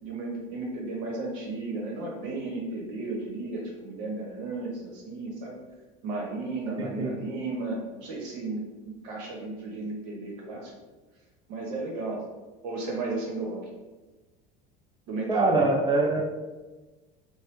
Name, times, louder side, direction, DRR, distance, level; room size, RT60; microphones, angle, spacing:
voice 1, 0.0-5.6 6.0-10.7 11.5-12.3 12.6-13.6 15.1-15.5, right 3 dB, 85° right, -2 dB, 1.0 m, -34 dB
voice 2, 6.8-7.1 15.3-16.2, right 3 dB, 20° right, 0 dB, 0.6 m, -23 dB
3.1 x 2.2 x 3.0 m, 1.2 s
supercardioid pair, 105°, 20 cm